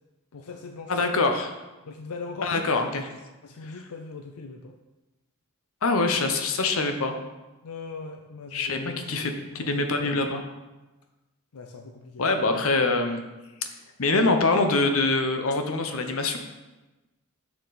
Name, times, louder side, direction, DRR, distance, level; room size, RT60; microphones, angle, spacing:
voice 1, 0.3-1.0 1.8-2.8 3.4-4.8 7.6-10.3 11.5-12.3, left 4 dB, 85° left, 5 dB, 0.5 m, -40 dB
voice 2, 0.9-1.5 2.4-3.1 5.8-7.2 8.5-10.5 12.2-13.2 14.0-16.4, left 3 dB, 65° left, 6 dB, 0.8 m, -24 dB
6.9 x 6.7 x 4.0 m, 1.1 s
head